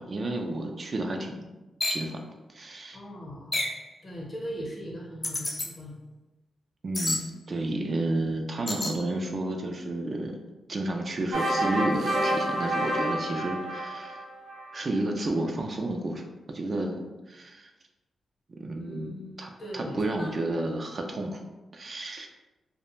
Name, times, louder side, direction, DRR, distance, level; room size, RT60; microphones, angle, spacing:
voice 1, 0.0-1.5 1.9-2.2 2.5-3.0 6.8-7.2 7.5-10.4 10.7-14.2 14.7-17.7 18.5-19.1 19.4-21.4 21.7-22.3, right 2 dB, 45° right, 3 dB, 0.3 m, -31 dB
sound 1, 1.8-2.1 3.5-3.8 5.2-5.7 6.9-7.3 8.7-9.0, left 1 dB, 30° left, 0.4 m, -29 dB
voice 2, 2.9-3.6 4.0-6.0 18.7-20.3, equal, 45° left, -2 dB, 0.8 m, -39 dB
sound 2, 11.3-14.8, right 1 dB, 75° right, 0.7 m, -29 dB
2.3 x 2.1 x 3.0 m, 1.1 s
cardioid pair, 70°, 0 cm